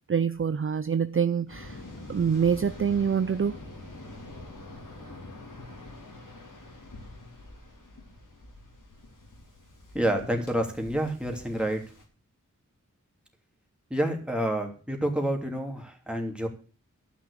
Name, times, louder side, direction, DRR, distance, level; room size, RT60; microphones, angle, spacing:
voice 1, 0.0-1.8 2.1-3.6, right 7 dB, 45° right, 0.5 m, -25 dB
Waves surf, 1.5-12.0, left 2 dB, 85° left, 3.1 m, -45 dB
voice 2, 9.9-11.8 13.9-16.5, right 1 dB, 5° right, 3.0 m, -28 dB
12.0 x 6.1 x 8.4 m
wide cardioid pair, 60°, 31 cm